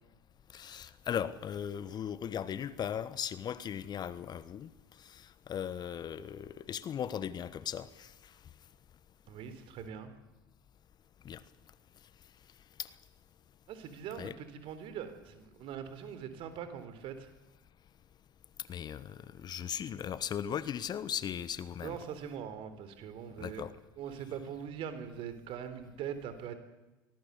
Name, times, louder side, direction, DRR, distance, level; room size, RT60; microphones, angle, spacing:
voice 1, 0.5-4.7 5.0-8.1 11.2-11.4 12.8-12.9 14.2-14.3 18.7-22.0 23.4-23.7, left 9 dB, 40° left, 1.2 m, -38 dB
voice 2, 9.3-10.1 13.7-17.3 21.8-23.7 24.0-26.6, right 8 dB, 55° right, 3.7 m, -42 dB
24.0 x 18.5 x 8.2 m
hypercardioid pair, 70°, 11 cm